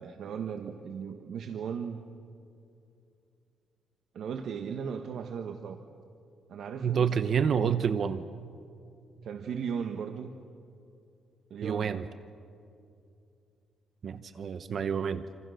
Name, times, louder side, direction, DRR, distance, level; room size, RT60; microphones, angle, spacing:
voice 1, 0.0-2.0 4.1-5.8 6.5-7.3 9.2-10.3 11.5-12.0, right 7 dB, 65° right, 6 dB, 1.3 m, -37 dB
voice 2, 6.8-8.2 11.6-12.0 14.0-15.2, right 7 dB, 50° right, 11 dB, 0.8 m, -28 dB
28.0 x 27.0 x 6.5 m, 2.6 s
cardioid pair, 135°, 0 cm